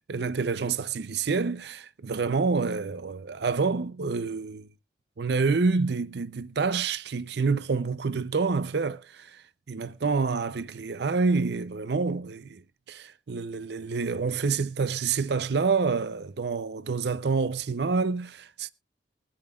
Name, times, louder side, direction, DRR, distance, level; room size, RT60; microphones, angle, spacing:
voice 1, 0.0-4.7 5.2-12.6 12.9-18.7, right 4 dB, 60° right, 0.5 m, -28 dB
22.0 x 8.6 x 2.4 m
head